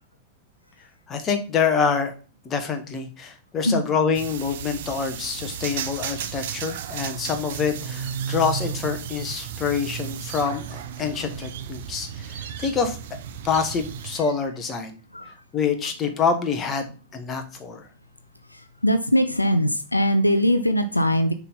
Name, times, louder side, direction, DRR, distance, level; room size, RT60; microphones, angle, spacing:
voice 1, 1.1-2.1 2.4-13.0 13.4-15.0 15.5-17.9, left 6 dB, 25° left, 6 dB, 1.3 m, -26 dB
sound 1, 4.1-14.2, right 8 dB, 55° right, 0.7 m, -34 dB
voice 2, 18.8-21.3, equal, 85° left, 9 dB, 0.5 m, -21 dB
6.5 x 3.7 x 5.5 m, 0.35 s
figure-of-eight pair, 90°, 0 cm